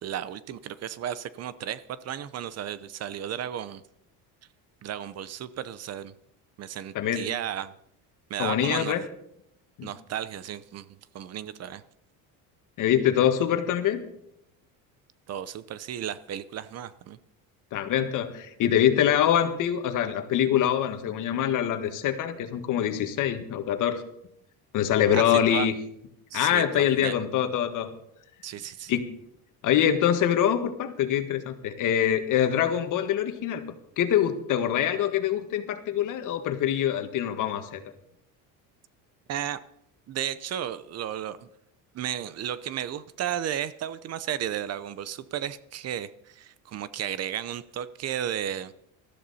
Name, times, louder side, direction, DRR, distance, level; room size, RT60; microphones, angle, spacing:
voice 1, 0.0-3.8 4.8-6.1 6.6-7.7 8.3-8.9 9.8-11.8 15.3-17.2 25.1-25.7 26.3-27.1 28.4-29.0 39.3-39.6 40.1-41.5 41.9-48.7, right 10 dB, 40° right, 16 dB, 0.7 m, -34 dB
voice 2, 8.4-9.0 9.8-9.9 12.8-14.0 17.7-24.0 24.7-25.7 26.3-27.9 28.9-29.0 29.6-33.6 34.0-37.8, left 10 dB, 55° left, 8 dB, 1.7 m, -24 dB
19.0 x 13.5 x 4.2 m, 0.76 s
cardioid pair, 135°, 37 cm